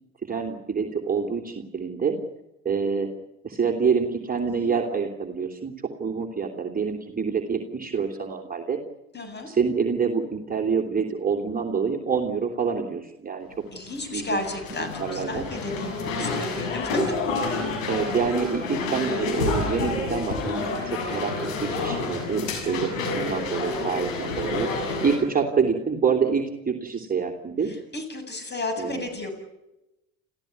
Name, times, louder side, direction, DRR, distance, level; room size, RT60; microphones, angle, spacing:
voice 1, 0.2-2.2 2.6-3.1 3.4-5.7 6.0-8.8 9.5-13.5 14.1-14.4 14.8-15.4 16.2-16.3 17.9-21.3 21.6-24.7 25.0-27.7 28.8-29.0, right 5 dB, 20° right, 1 dB, 3.2 m, -26 dB
voice 2, 4.5-4.8 9.1-9.5 13.7-17.0 27.6-29.3, left 2 dB, 25° left, 7 dB, 7.8 m, -33 dB
sound 1, 13.6-25.2, left 3 dB, 80° left, 6.6 m, -29 dB
29.0 x 15.5 x 9.5 m, 0.92 s
hypercardioid pair, 65°, 39 cm